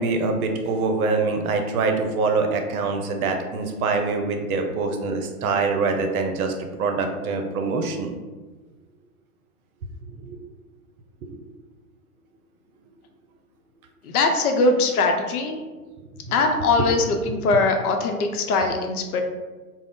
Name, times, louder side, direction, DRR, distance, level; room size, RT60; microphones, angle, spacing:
voice 1, 0.0-6.5 6.8-8.1 10.2-10.4, right 4 dB, 70° right, 5 dB, 0.6 m, -24 dB
voice 2, 14.0-15.6 16.3-19.2, left 3 dB, 75° left, 4 dB, 0.6 m, -21 dB
2.4 x 2.0 x 3.5 m, 1.3 s
hypercardioid pair, 115°, 45 cm